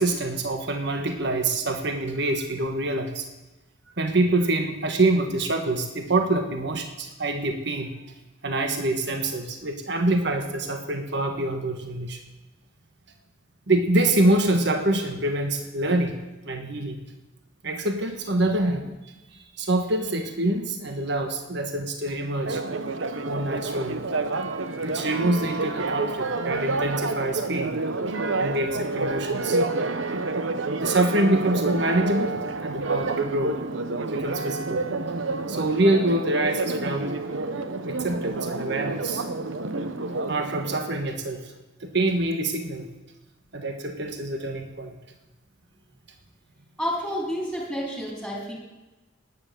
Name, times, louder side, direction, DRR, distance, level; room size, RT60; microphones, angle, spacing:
voice 1, 0.0-3.2 4.0-7.9 8.4-12.2 13.7-16.1 16.4-17.0 17.6-19.2 19.6-22.6 23.3-24.0 24.7-27.7 28.4-29.6 30.8-33.6 34.1-34.8 35.5-37.1 37.8-39.2 40.3-41.4 41.8-42.9 43.5-44.9, right 2 dB, 60° right, 5 dB, 1.6 m, -25 dB
Church bell, 22.5-40.8, right 3 dB, 85° right, 1.0 m, -29 dB
voice 2, 46.8-48.5, equal, ahead, -3 dB, 3.9 m, -29 dB
18.5 x 10.0 x 7.0 m, 1.1 s
head